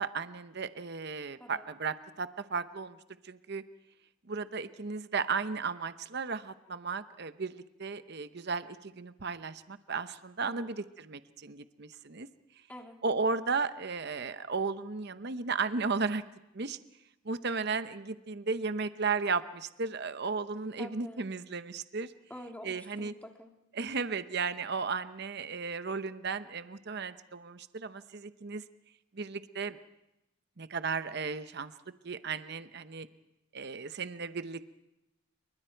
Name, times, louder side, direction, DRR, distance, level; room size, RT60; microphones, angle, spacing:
voice 1, 0.0-3.0 3.2-3.6 4.3-12.3 13.0-16.2 16.5-16.8 17.2-22.1 22.6-23.1 23.7-28.6 29.1-29.8 30.6-31.7 32.0-33.1 33.5-34.6, right 4 dB, 50° right, 12 dB, 0.8 m, -35 dB
voice 2, 10.4-10.8 12.7-13.0 20.8-21.2 22.3-23.5, left 1 dB, 5° left, 3 dB, 2.0 m, -47 dB
28.5 x 24.0 x 4.6 m, 0.92 s
head